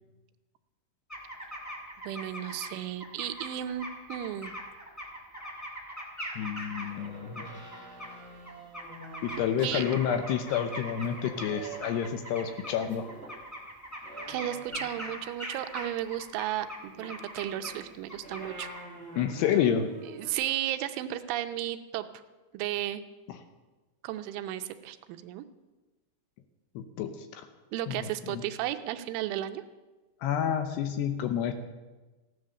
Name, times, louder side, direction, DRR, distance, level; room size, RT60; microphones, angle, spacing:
sound 1, 1.1-2.7 3.0-7.1 7.3-8.1 8.5-17.8 18.1-18.8, equal, 25° left, 0.4 m, -41 dB
voice 1, 2.0-4.5 9.6-9.8 14.3-18.7 20.1-22.1 22.5-23.0 24.0-25.4 27.7-29.6, right 13 dB, 85° right, 9 dB, 3.2 m, -34 dB
voice 2, 6.4-7.6 9.4-13.1 19.2-19.9 26.8-27.4 27.9-28.4 30.2-31.5, left 9 dB, 75° left, 8 dB, 2.6 m, -29 dB
sound 2, 6.9-13.4 14.0-15.2 16.8-20.3, right 2 dB, 20° right, 2.7 m, -48 dB
15.5 x 11.0 x 6.6 m, 1.2 s
omnidirectional pair, 5.4 m